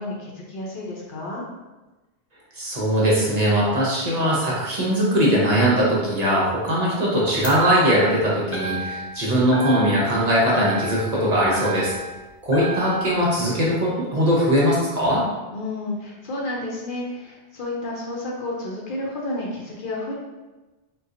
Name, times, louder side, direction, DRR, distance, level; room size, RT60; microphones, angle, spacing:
voice 1, 0.0-1.4 15.5-20.1, left 2 dB, 60° left, -3 dB, 0.7 m, -31 dB
voice 2, 2.5-11.9 12.4-15.2, equal, 45° right, -6 dB, 0.8 m, -20 dB
sound 1, 7.4-8.2 8.5-9.2 9.5-10.2 10.5-12.2 12.5-13.1, right 1 dB, 85° left, 0.9 m, -32 dB
4.1 x 2.3 x 2.5 m, 1.1 s
omnidirectional pair, 1.1 m